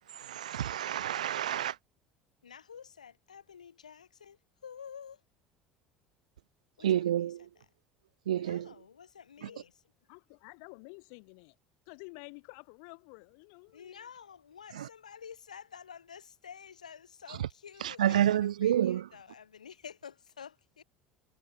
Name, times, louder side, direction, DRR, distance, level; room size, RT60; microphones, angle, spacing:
voice 1, 0.2-1.7 6.8-7.4 8.3-8.6 18.0-19.0, right 11 dB, 85° right, 0.4 m, -28 dB
voice 2, 2.4-5.2 6.8-7.7 8.3-9.8 13.7-20.8, left 7 dB, 90° left, 7.4 m, -50 dB
voice 3, 10.1-11.6 11.9-14.1, left 40 dB or more, 70° left, 7.2 m, -50 dB
hypercardioid pair, 70°, 4 cm